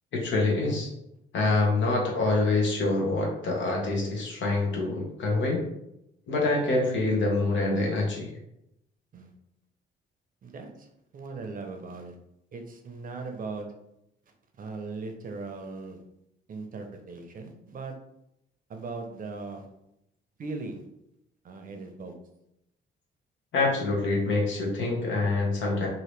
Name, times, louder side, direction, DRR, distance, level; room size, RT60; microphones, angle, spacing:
voice 1, 0.1-0.9 1.3-5.6 6.3-8.3 23.5-25.9, left 2 dB, 70° left, -1 dB, 1.1 m, -26 dB
voice 2, 10.4-10.9 11.1-12.2 12.5-13.7 14.3-16.0 16.5-17.9 18.7-19.7 20.4-20.8 21.4-22.1, right 3 dB, 45° right, 4 dB, 0.6 m, -39 dB
2.9 x 2.7 x 3.2 m, 0.82 s
cardioid pair, 90°, 20 cm